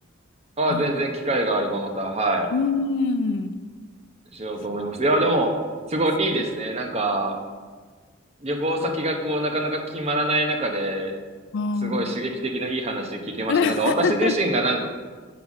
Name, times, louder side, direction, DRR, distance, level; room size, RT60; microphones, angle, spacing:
voice 1, 0.6-2.5 4.3-5.6 5.9-7.4 8.4-11.2 11.8-14.8, right 1 dB, 30° right, 3 dB, 0.8 m, -24 dB
voice 2, 2.5-3.5 6.3-6.4 11.5-12.2 13.5-14.3, left 4 dB, 65° left, 12 dB, 0.4 m, -24 dB
7.7 x 4.0 x 5.9 m, 1.5 s
head